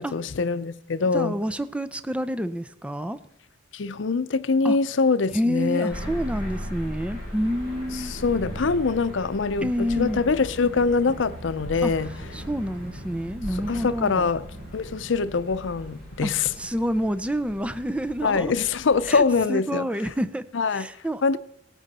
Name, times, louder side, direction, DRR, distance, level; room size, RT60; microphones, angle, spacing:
voice 1, 0.0-1.4 3.7-6.0 8.0-12.1 13.7-14.5 14.7-16.5 18.2-19.8 20.5-20.9 21.2-21.4, left 4 dB, 80° left, 0.6 m, -24 dB
voice 2, 1.1-3.2 4.6-4.8 5.3-8.1 9.6-10.2 11.8-11.9 12.3-14.3 16.2-16.3 16.6-18.5 19.1-20.4 20.7-21.4, equal, 5° right, 0.4 m, -28 dB
sound 1, 5.9-19.2, equal, 55° right, 6.1 m, -38 dB
18.5 x 9.0 x 4.2 m
head